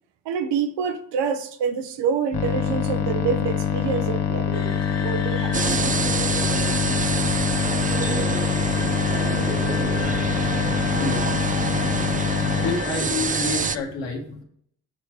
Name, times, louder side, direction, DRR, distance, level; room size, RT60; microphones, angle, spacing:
voice 1, 0.2-5.9, right 6 dB, 75° right, 0.9 m, -27 dB
sound 1, 2.3-12.8, left 8 dB, 65° left, 1.1 m, -24 dB
sound 2, 4.5-13.8, left 5 dB, 35° left, 1.0 m, -36 dB
sound 3, 5.5-13.8, right 6 dB, 20° right, 0.4 m, -27 dB
voice 2, 9.9-10.4 11.0-11.6 12.1-14.4, left 4 dB, 85° left, 1.6 m, -30 dB
7.1 x 4.5 x 4.8 m
hypercardioid pair, 45°, 42 cm